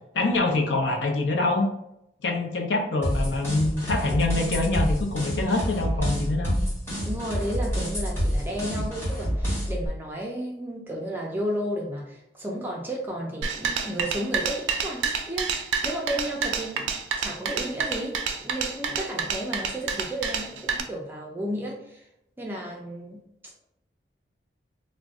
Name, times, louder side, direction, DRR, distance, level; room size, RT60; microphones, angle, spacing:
voice 1, 0.1-1.7 2.2-6.6, left 2 dB, 80° left, 3 dB, 0.5 m, -25 dB
sound 1, 3.0-9.9, equal, 15° left, 1.4 m, -28 dB
voice 2, 7.0-22.1 22.4-23.2, equal, 10° right, -2 dB, 0.4 m, -33 dB
sound 2, 13.4-20.8, right 6 dB, 85° right, 0.4 m, -28 dB
2.5 x 2.1 x 3.5 m, 0.81 s
head